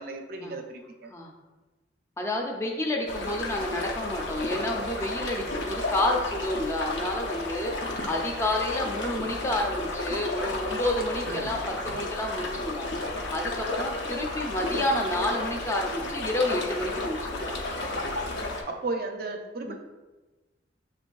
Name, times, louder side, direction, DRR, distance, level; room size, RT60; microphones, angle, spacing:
voice 1, 0.0-1.1 11.2-11.6 18.7-19.8, right 3 dB, 55° right, 4 dB, 0.4 m, -35 dB
voice 2, 2.2-7.7 8.1-12.9 13.3-17.5 19.7-19.8, left 1 dB, 15° left, 0 dB, 0.5 m, -29 dB
sound 1, 3.1-18.6, left 2 dB, 70° left, 0.6 m, -33 dB
6.7 x 2.5 x 2.3 m, 1.2 s
head